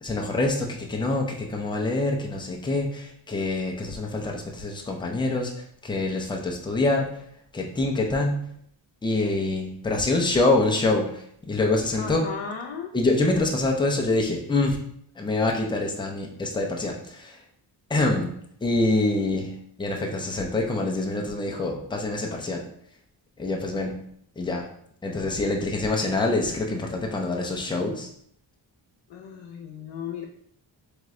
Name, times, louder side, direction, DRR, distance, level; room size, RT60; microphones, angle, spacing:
voice 1, 0.0-7.2 7.5-8.4 9.0-12.3 12.9-14.8 15.2-17.4 17.9-18.3 18.6-22.6 23.4-24.0 24.4-24.7 25.0-28.1, left 2 dB, 10° left, 0 dB, 0.4 m, -25 dB
voice 2, 11.9-12.9 29.1-30.3, left 6 dB, 75° left, 0 dB, 0.6 m, -35 dB
3.9 x 3.6 x 3.1 m, 0.67 s
wide cardioid pair, 175°, 44 cm